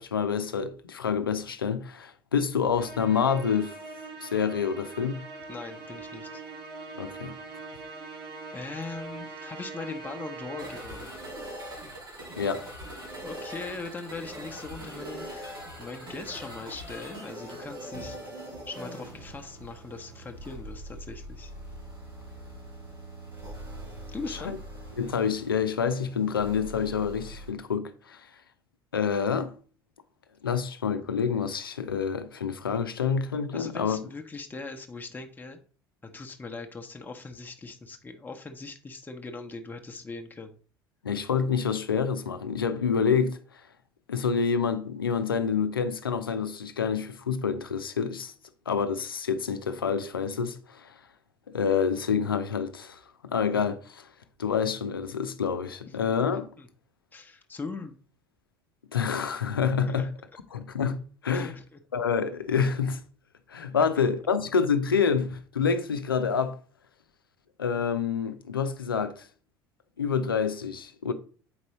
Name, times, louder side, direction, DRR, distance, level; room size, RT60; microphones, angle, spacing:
voice 1, 0.0-3.8 4.2-5.2 7.0-7.4 12.4-12.6 24.3-24.6 25.0-28.3 28.9-29.5 30.4-34.0 41.0-43.4 44.1-48.3 48.7-50.9 51.5-54.1 54.4-56.5 58.9-60.1 60.5-61.5 61.9-63.0 63.5-66.6 67.6-69.3 70.0-71.1, left 6 dB, 80° left, 0.7 m, -27 dB
Musical instrument, 2.7-11.2, right 3 dB, 50° right, 1.7 m, -42 dB
voice 2, 5.5-6.4 8.5-11.2 13.2-18.2 18.7-21.5 24.1-24.6 33.5-35.6 36.0-40.5 55.9-56.0 56.6-56.7 57.1-58.0 59.9-60.1 61.3-61.8, left 3 dB, 15° left, 1.0 m, -40 dB
sound 1, 10.6-27.5, right 1 dB, 90° right, 2.9 m, -42 dB
8.0 x 5.2 x 3.1 m
figure-of-eight pair, 60°, 12 cm